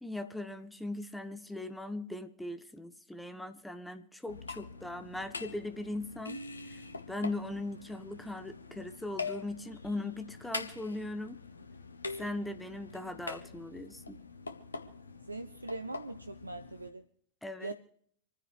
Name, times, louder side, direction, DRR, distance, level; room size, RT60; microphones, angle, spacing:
voice 1, 0.0-6.4 6.7-6.8 7.1-11.4 12.2-14.2 17.4-17.7, left 2 dB, 5° left, 1.1 m, -39 dB
sound 1, 4.3-16.9, left 4 dB, 75° left, 1.0 m, -44 dB
voice 2, 15.3-17.0 17.6-17.7, right 2 dB, 80° right, 0.5 m, -41 dB
27.0 x 10.0 x 3.3 m
figure-of-eight pair, 90°, 0 cm